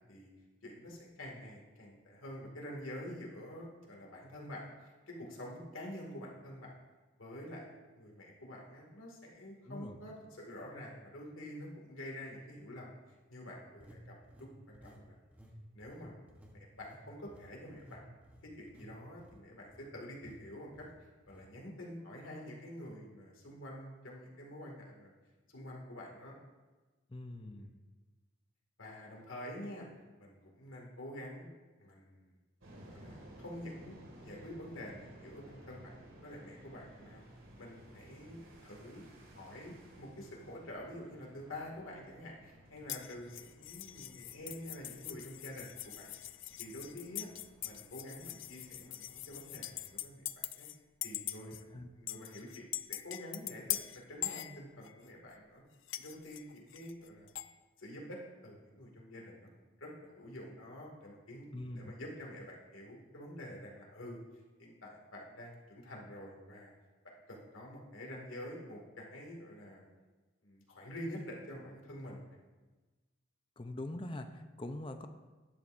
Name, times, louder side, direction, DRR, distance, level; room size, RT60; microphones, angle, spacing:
voice 1, 0.6-6.8 7.2-7.7 7.9-13.0 13.3-15.2 15.7-16.2 16.5-18.0 18.4-20.9 21.3-25.1 25.5-26.3 27.4-27.7 28.8-29.9 30.2-31.5 31.8-32.4 32.9-37.2 37.6-39.0 39.3-46.1 46.6-47.3 47.6-50.7 51.0-51.6 51.9-53.8 54.1-55.6 56.0-57.3 57.8-59.5 59.8-64.2 64.6-66.7 67.3-69.8 70.4-72.4, left 1 dB, 85° left, -1 dB, 2.2 m, -47 dB
sound 1, 9.3-9.4 10.1-10.2 13.8-15.0 15.3-15.5 15.8-19.9 20.2-20.4 20.7-20.9 21.3-21.5, equal, 10° right, 1.0 m, -57 dB
voice 2, 9.6-10.0 27.1-27.7 51.4-51.9 61.5-61.9 73.6-75.1, left 1 dB, 25° left, 7 dB, 0.6 m, -43 dB
sound 2, 32.6-50.0, right 1 dB, 85° right, 2.2 m, -57 dB
sound 3, 42.9-50.8 51.0-51.6 52.1-55.1 55.9-57.5, left 14 dB, 70° left, 0.4 m, -42 dB
12.0 x 10.0 x 2.6 m, 1.2 s
head